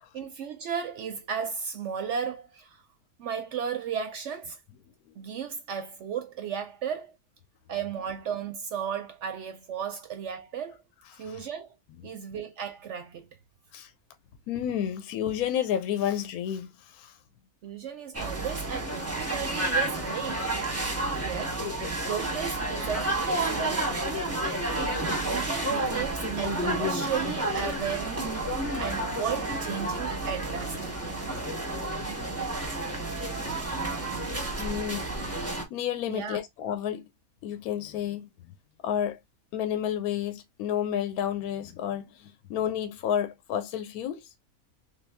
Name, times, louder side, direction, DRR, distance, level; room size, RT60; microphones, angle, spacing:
voice 1, 0.1-2.8 3.2-4.6 5.2-7.2 7.7-10.8 11.2-11.8 12.0-13.4 17.6-20.5 21.2-21.6 22.0-24.1 24.7-28.1 28.8-31.2 36.1-36.4, right 7 dB, 65° right, 0.7 m, -35 dB
voice 2, 14.5-17.2 21.1-21.2 34.6-35.1 35.3-35.4 35.7-37.0 37.4-38.2 38.8-39.2 39.5-44.3, left 10 dB, 80° left, 1.0 m, -31 dB
sound 1, 18.1-35.6, right 2 dB, 15° right, 0.6 m, -30 dB
3.1 x 2.5 x 3.3 m
omnidirectional pair, 1.6 m